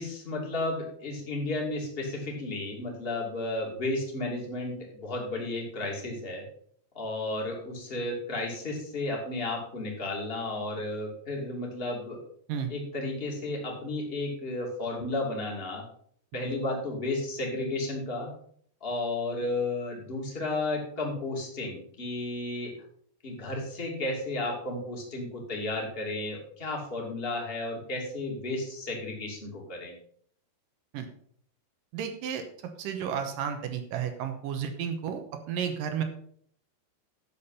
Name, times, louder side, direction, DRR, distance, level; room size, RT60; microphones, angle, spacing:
voice 1, 0.0-6.5 6.9-12.2 12.7-15.8 16.3-18.3 18.8-22.7 23.2-29.9, left 2 dB, 20° left, -1 dB, 2.0 m, -33 dB
voice 2, 31.9-36.0, right 8 dB, 70° right, 7 dB, 2.2 m, -32 dB
11.0 x 7.2 x 5.6 m, 0.62 s
omnidirectional pair, 4.8 m